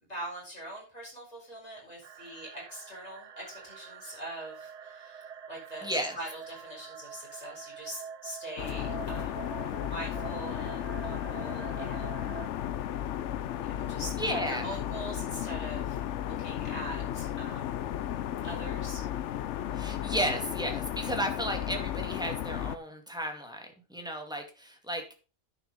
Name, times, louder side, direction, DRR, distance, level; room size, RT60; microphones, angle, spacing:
voice 1, 0.1-9.5 9.8-12.2 13.6-17.7 18.4-19.0, right 1 dB, 35° left, -4 dB, 7.0 m, -43 dB
sound 1, 2.0-12.5, right 8 dB, 50° right, 0.5 m, -45 dB
voice 2, 5.8-6.2 14.2-14.8 19.7-25.0, right 1 dB, 5° right, 3 dB, 2.3 m, -34 dB
sound 2, 8.6-22.8, left 11 dB, 90° left, 1.0 m, -34 dB
10.5 x 6.2 x 5.5 m, 0.33 s
omnidirectional pair, 1.2 m